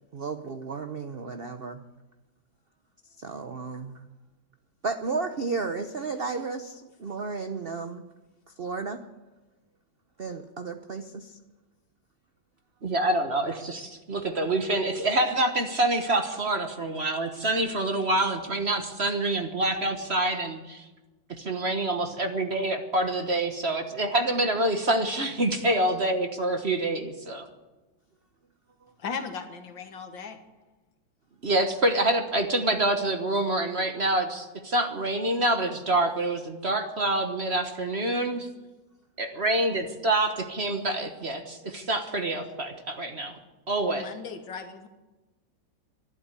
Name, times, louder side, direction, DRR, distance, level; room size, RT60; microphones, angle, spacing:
voice 1, 0.1-1.8 3.2-4.0 4.8-8.0 8.6-9.1 10.2-11.4 17.2-17.3, right 4 dB, 60° right, 8 dB, 0.6 m, -33 dB
voice 2, 12.8-20.8 21.4-27.5 31.4-38.5 39.2-43.4 43.7-44.0, right 1 dB, 40° right, 6 dB, 1.3 m, -26 dB
voice 3, 29.0-30.4 43.9-44.9, left 6 dB, 70° left, 7 dB, 2.1 m, -37 dB
12.0 x 11.5 x 9.8 m, 1.1 s
omnidirectional pair, 2.1 m